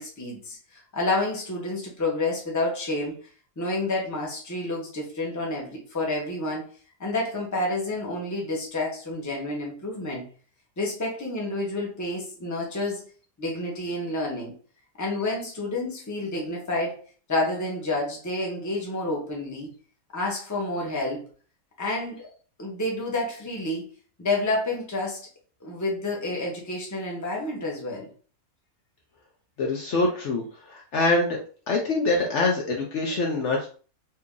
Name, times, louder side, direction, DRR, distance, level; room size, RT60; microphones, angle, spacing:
voice 1, 0.0-3.2 3.6-6.7 7.0-10.2 10.8-13.0 13.4-14.5 15.0-17.0 17.3-19.7 20.1-21.3 21.8-22.3 22.6-23.9 24.2-25.2 25.6-28.1, left 2 dB, 15° left, -2 dB, 0.7 m, -29 dB
voice 2, 29.6-30.4 30.7-31.4 31.7-33.7, left 2 dB, 60° left, 0 dB, 0.9 m, -24 dB
2.8 x 2.7 x 3.6 m, 0.40 s
omnidirectional pair, 1.5 m